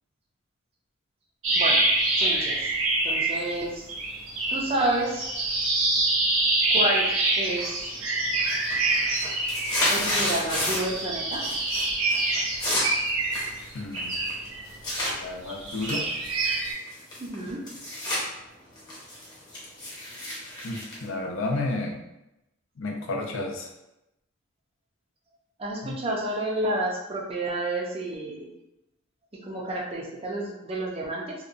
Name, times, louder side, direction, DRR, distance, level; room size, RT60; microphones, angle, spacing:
sound 1, 1.4-3.6 3.9-10.2 10.6-15.0 15.5-16.7, right 2 dB, 85° right, 0.6 m, -26 dB
voice 1, 2.2-2.7 3.0-3.9 4.5-5.2 6.7-7.1 7.4-7.8 9.9-11.4 17.2-17.6 25.6-28.5 29.4-31.3, right 1 dB, 30° right, -2 dB, 0.5 m, -29 dB
sound 2, 7.6-8.0 8.3-11.0 11.3-11.8 12.1-15.1 15.7-18.2 18.6-21.8, left 1 dB, 20° left, 0.7 m, -31 dB
voice 2, 13.7-14.2 15.2-16.1 20.6-22.0 22.8-23.7 25.8-26.0, left 2 dB, 75° left, 1 dB, 0.5 m, -31 dB
2.8 x 2.1 x 2.5 m, 0.91 s
head